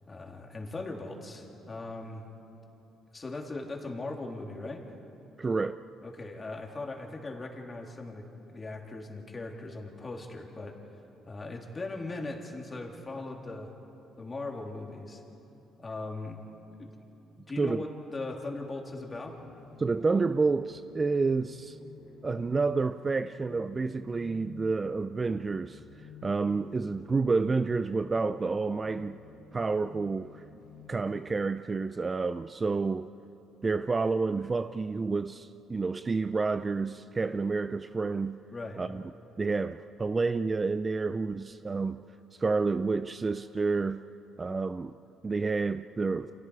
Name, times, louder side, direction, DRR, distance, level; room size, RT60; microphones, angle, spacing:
voice 1, 0.1-2.2 3.1-4.8 6.0-10.7 11.3-13.7 14.2-15.2 15.8-16.4 16.8-17.0 17.5-19.3 38.5-38.8, left 2 dB, 25° left, 3.1 m, -39 dB
voice 2, 5.4-5.8 17.6-17.8 19.8-21.8 22.2-25.8 26.2-29.2 29.5-30.4 30.9-33.1 33.6-38.4 38.8-39.0 39.4-42.0 42.4-44.0 44.4-44.9 45.2-46.3, right 4 dB, 25° right, 0.5 m, -29 dB
sound 1, 19.1-31.3, left 5 dB, 85° left, 3.9 m, -52 dB
29.5 x 27.5 x 4.8 m
cardioid pair, 115°, 0 cm